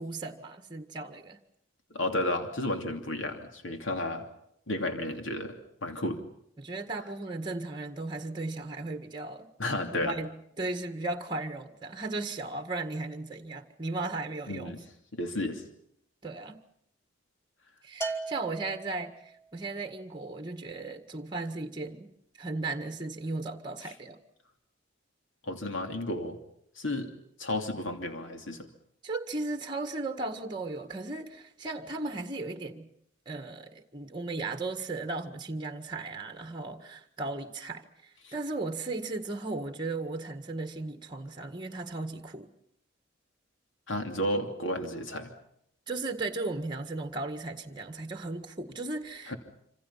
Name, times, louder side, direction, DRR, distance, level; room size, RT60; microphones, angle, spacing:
voice 1, 0.0-1.4 6.6-9.5 9.9-14.8 16.2-16.6 17.8-22.1 22.4-24.2 29.0-32.9 33.3-37.9 38.3-42.5 45.9-49.3, right 3 dB, 25° right, 6 dB, 1.8 m, -36 dB
voice 2, 1.9-4.2 4.7-6.2 9.6-10.2 14.5-14.8 15.1-15.6 23.8-23.9 25.4-26.4 26.8-27.1 27.4-28.7 38.2-38.3 43.9-45.3 49.3-49.4, left 1 dB, 75° left, 5 dB, 2.9 m, -32 dB
Bell, 18.0-19.4, right 3 dB, 15° left, 2.4 m, -37 dB
27.0 x 26.5 x 5.8 m, 0.73 s
head